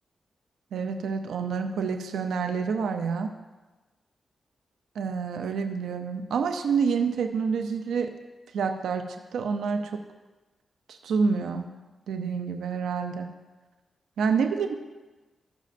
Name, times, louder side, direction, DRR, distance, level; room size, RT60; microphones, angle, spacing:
voice 1, 0.7-3.3 5.0-8.1 8.5-9.0 9.3-10.0 10.9-11.7 12.1-13.3 14.2-14.7, right 5 dB, 90° right, 7 dB, 0.5 m, -28 dB
13.5 x 6.2 x 2.5 m, 1.2 s
cardioid pair, 60°, 0 cm